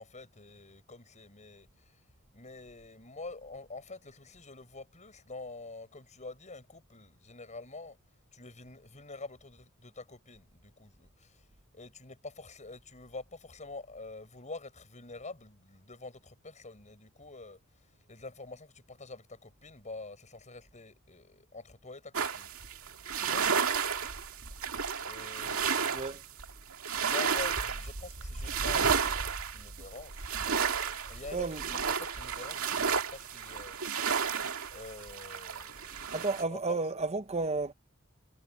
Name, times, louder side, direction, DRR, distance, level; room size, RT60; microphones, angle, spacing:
voice 1, 0.0-2.0 2.3-8.0 8.3-11.5 11.7-22.5 23.2-23.5 25.0-26.2 26.9-30.2 31.1-33.8 34.0-36.8, left 3 dB, 35° left, 7.0 m, -47 dB
sound 1, 22.1-36.4, right 6 dB, 70° right, 2.2 m, -32 dB
voice 2, 31.3-31.8 36.1-37.7, right 3 dB, 30° right, 0.9 m, -32 dB
head